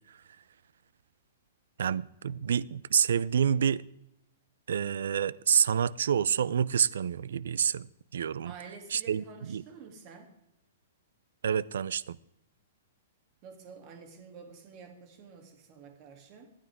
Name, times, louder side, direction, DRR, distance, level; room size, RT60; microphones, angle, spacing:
voice 1, 1.8-3.8 4.7-7.9 8.1-8.5 8.9-9.6 11.4-12.2, right 8 dB, 80° right, 0.5 m, -28 dB
voice 2, 8.4-10.3 13.4-16.5, right 5 dB, 30° right, 2.8 m, -49 dB
25.0 x 9.8 x 3.6 m
hypercardioid pair, 165°, 0 cm